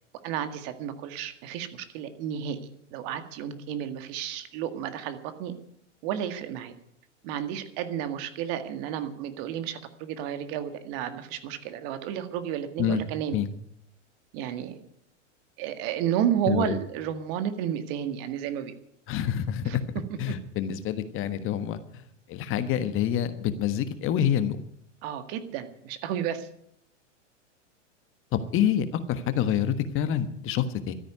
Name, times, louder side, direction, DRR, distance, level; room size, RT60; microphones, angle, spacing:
voice 1, 0.2-2.6 2.9-5.5 6.0-6.7 7.2-13.4 14.3-14.8 15.6-18.7 19.7-19.8 20.1-20.3 25.0-26.5, right 10 dB, 50° right, 9 dB, 1.9 m, -32 dB
voice 2, 16.5-16.8 19.1-19.8 20.2-22.0 22.3-24.6 28.3-31.0, left 9 dB, 35° left, 11 dB, 1.3 m, -27 dB
13.0 x 10.0 x 9.5 m, 0.72 s
hypercardioid pair, 110°, 37 cm